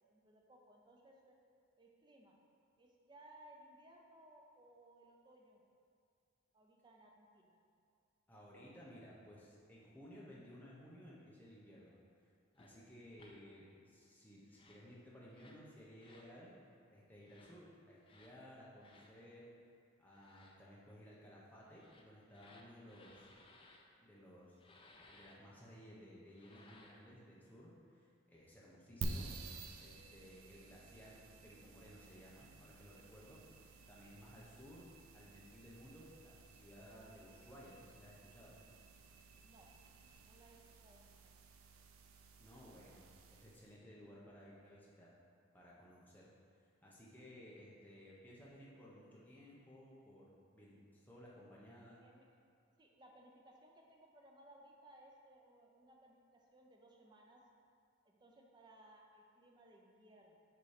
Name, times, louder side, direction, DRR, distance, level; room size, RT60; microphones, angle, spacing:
voice 1, 0.1-1.3 1.8-2.4 2.8-5.6 6.5-7.6 39.4-39.7 40.2-40.6 40.8-41.3 52.0-52.2 52.8-57.4 58.0-60.4, right 1 dB, 20° right, 0 dB, 0.5 m, -62 dB
voice 2, 8.3-12.0 12.5-16.5 16.9-19.5 20.0-23.3 24.0-24.6 25.1-29.3 29.8-33.4 33.9-38.6 42.4-45.2 45.5-46.3 46.6-52.0, equal, 10° left, -6 dB, 0.9 m, -57 dB
sound 1, 12.6-12.7 13.2-13.4 14.4-14.9 15.3-15.6 16.0-16.3 17.2-17.5 18.0-18.3 18.8-19.1 20.1-20.6 21.7-23.8 24.6-25.4 26.3-27.1, left 2 dB, 25° left, 0.4 m, -63 dB
sound 2, 29.0-43.7, right 3 dB, 85° right, 0.5 m, -51 dB
6.9 x 3.0 x 4.9 m, 2.3 s
head